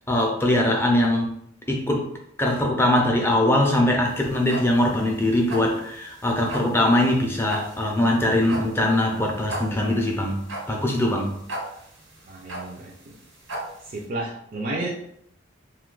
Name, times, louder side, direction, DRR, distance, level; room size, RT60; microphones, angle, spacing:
voice 1, 0.1-1.3 1.7-2.1 2.4-10.4 10.7-11.3, left 1 dB, 10° left, 0 dB, 0.5 m, -21 dB
sound 1, 4.1-14.0, right 1 dB, 85° right, 1.2 m, -36 dB
voice 2, 12.2-13.2 13.9-14.9, right 2 dB, 45° right, -3 dB, 0.5 m, -32 dB
2.7 x 2.3 x 3.7 m, 0.71 s
head